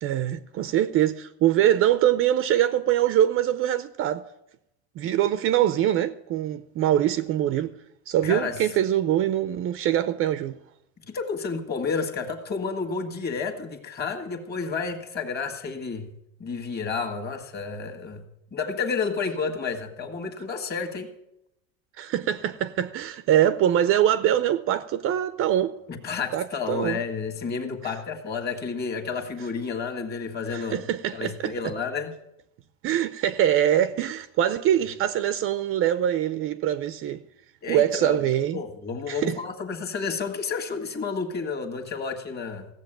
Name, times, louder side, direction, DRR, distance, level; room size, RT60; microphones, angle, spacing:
voice 1, 0.0-4.2 5.0-7.7 8.1-10.6 22.0-25.7 26.3-27.0 30.5-31.7 32.8-37.2 37.7-38.6 39.1-39.4, right 11 dB, 35° right, 0.5 m, -23 dB
voice 2, 8.2-8.6 11.1-16.1 16.4-18.2 18.5-21.1 25.9-30.8 31.1-32.1 37.6-38.2 38.5-42.7, left 5 dB, 25° left, 1.8 m, -31 dB
16.0 x 7.7 x 9.0 m
cardioid pair, 150°, 36 cm